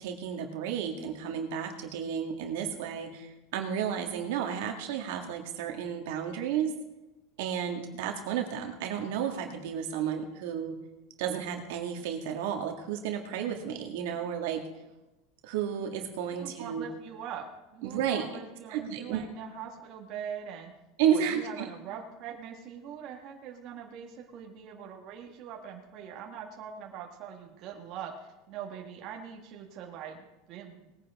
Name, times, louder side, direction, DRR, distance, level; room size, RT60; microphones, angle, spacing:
voice 1, 0.0-6.7 7.4-10.8 11.2-14.7 15.4-16.8 17.8-18.3 18.7-19.2 21.0-21.7, right 8 dB, 75° right, 3 dB, 1.9 m, -32 dB
voice 2, 16.3-17.5 17.7-20.7 21.1-30.9, right 8 dB, 45° right, 1 dB, 1.7 m, -42 dB
19.5 x 10.0 x 3.7 m, 1.0 s
supercardioid pair, 145°, 0 cm